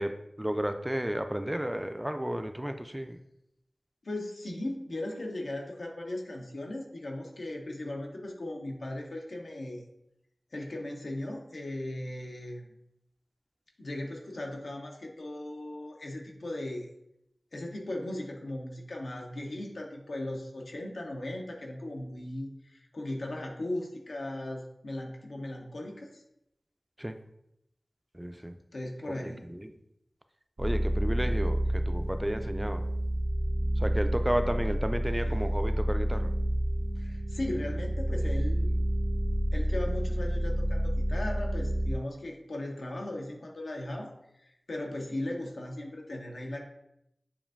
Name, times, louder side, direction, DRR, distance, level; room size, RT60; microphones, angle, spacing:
voice 1, 0.0-3.2 27.0-27.2 28.1-28.5 29.0-29.7 30.6-32.8 33.8-36.3, equal, 15° right, 8 dB, 0.3 m, -33 dB
voice 2, 4.0-9.9 10.5-12.6 13.8-16.9 17.5-26.2 28.7-29.5 35.2-35.4 37.0-38.7 39.5-44.1 44.4-46.6, left 1 dB, 90° left, 0 dB, 0.7 m, -37 dB
sound 1, 30.6-42.0, right 1 dB, 80° right, 1.3 m, -29 dB
7.0 x 2.6 x 2.5 m, 0.81 s
wide cardioid pair, 50°, 0 cm